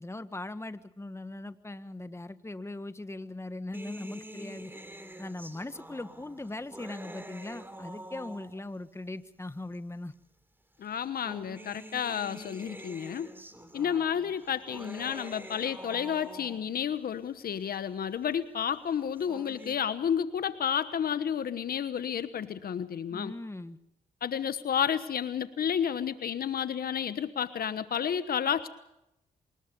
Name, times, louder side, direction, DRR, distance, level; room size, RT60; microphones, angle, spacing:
voice 1, 0.0-4.7 5.2-10.1 23.1-23.8, left 2 dB, 15° left, 11 dB, 1.6 m, -40 dB
sound 1, 3.7-8.8 9.7-9.8 10.9-16.8 19.0-19.7, right 1 dB, 15° right, 3.3 m, -46 dB
voice 2, 10.8-13.3 13.7-23.3 24.2-28.7, left 8 dB, 70° left, 13 dB, 1.2 m, -31 dB
26.0 x 20.5 x 5.4 m, 0.86 s
supercardioid pair, 50°, 16 cm